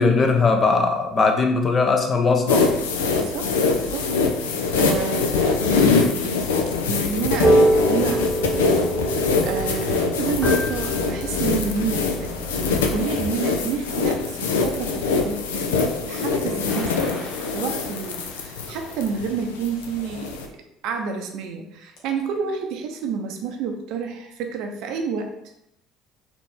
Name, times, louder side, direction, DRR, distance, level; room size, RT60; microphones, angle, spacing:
voice 1, 0.0-2.7, left 4 dB, 35° left, 4 dB, 0.7 m, -19 dB
sound 1, 2.5-20.5, left 4 dB, 75° left, 0.4 m, -23 dB
voice 2, 3.1-6.4 6.8-25.4, right 6 dB, 60° right, 4 dB, 0.6 m, -30 dB
sound 2, 7.3-13.3, right 2 dB, 15° right, 1.1 m, -25 dB
Fart, 16.7-19.0 19.6-19.7 21.0-21.1 21.4-21.5 22.0-22.2, left 3 dB, 60° left, 1.2 m, -36 dB
4.0 x 3.0 x 3.5 m, 0.81 s
figure-of-eight pair, 60°, 0 cm